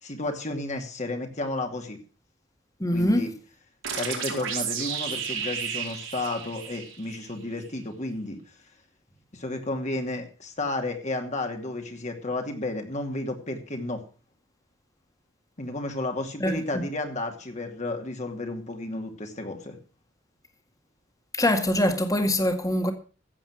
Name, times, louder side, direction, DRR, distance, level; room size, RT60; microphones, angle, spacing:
voice 1, 0.0-2.0 2.9-3.3 4.0-8.4 9.3-14.0 15.6-19.8, left 2 dB, 40° left, 2.5 m, -32 dB
voice 2, 2.8-3.3 16.4-16.8 21.3-22.9, left 1 dB, 20° left, 2.0 m, -24 dB
sound 1, 3.8-7.3, right 7 dB, 85° right, 4.5 m, -32 dB
15.0 x 8.0 x 6.2 m
head